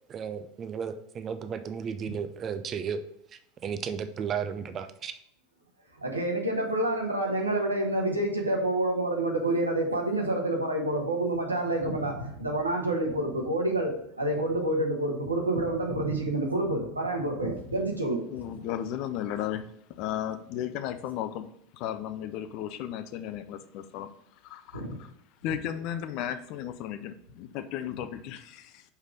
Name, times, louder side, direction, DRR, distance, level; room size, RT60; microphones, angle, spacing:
voice 1, 0.1-3.0 3.3-5.2, right 7 dB, 30° right, 10 dB, 0.6 m, -34 dB
voice 2, 6.0-18.2 24.7-24.9, right 1 dB, 85° right, 1 dB, 1.3 m, -28 dB
voice 3, 18.3-21.5 21.7-24.1 24.4-25.1 25.4-28.8, left 10 dB, 50° left, 11 dB, 0.6 m, -35 dB
5.6 x 4.8 x 5.1 m, 0.71 s
figure-of-eight pair, 80°, 0 cm